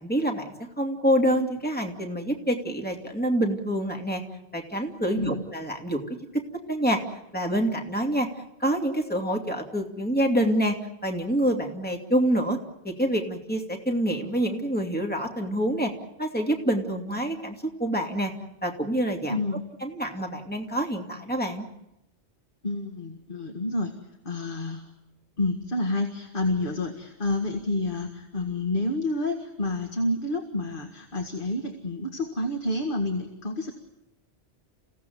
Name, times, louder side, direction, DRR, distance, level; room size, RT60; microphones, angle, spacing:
voice 1, 0.0-4.2 4.5-6.0 6.3-6.4 6.7-7.0 7.3-8.3 8.6-10.8 11.0-12.6 12.8-15.9 16.2-18.3 18.6-19.4 19.8-21.6, right 1 dB, 10° left, 2 dB, 2.6 m, -26 dB
voice 2, 5.1-5.5 19.3-19.7 22.6-23.9 24.2-24.9 25.4-33.7, left 2 dB, 50° left, 4 dB, 2.1 m, -29 dB
29.5 x 17.0 x 9.4 m, 0.88 s
omnidirectional pair, 1.1 m